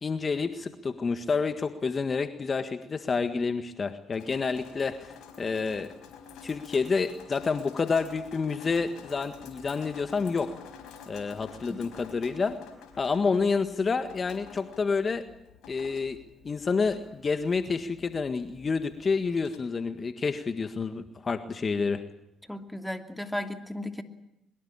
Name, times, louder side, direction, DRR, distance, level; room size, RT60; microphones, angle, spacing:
voice 1, 0.0-5.9 6.4-10.5 11.1-12.6 13.0-15.2 15.7-16.2 16.4-22.0, left 4 dB, 40° left, 10 dB, 1.6 m, -29 dB
Drip, 4.1-19.6, left 6 dB, 75° left, 4.7 m, -49 dB
voice 2, 22.5-24.0, left 1 dB, 5° left, 7 dB, 2.8 m, -35 dB
23.5 x 21.5 x 8.8 m, 0.83 s
hypercardioid pair, 55°, 0 cm